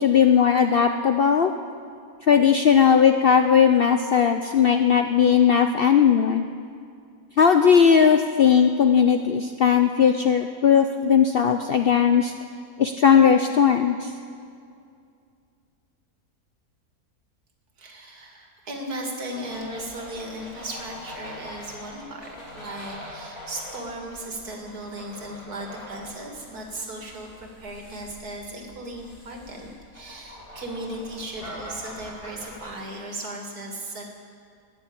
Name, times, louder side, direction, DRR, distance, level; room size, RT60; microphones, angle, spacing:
voice 1, 0.0-1.5 2.2-6.4 7.4-12.3 12.8-14.1, left 7 dB, 65° left, 6 dB, 0.5 m, -18 dB
voice 2, 17.8-34.0, right 1 dB, 85° right, 1 dB, 2.6 m, -36 dB
sound 1, 19.5-32.7, left 1 dB, 35° left, 3.7 m, -43 dB
20.5 x 7.2 x 8.6 m, 2.4 s
omnidirectional pair, 1.6 m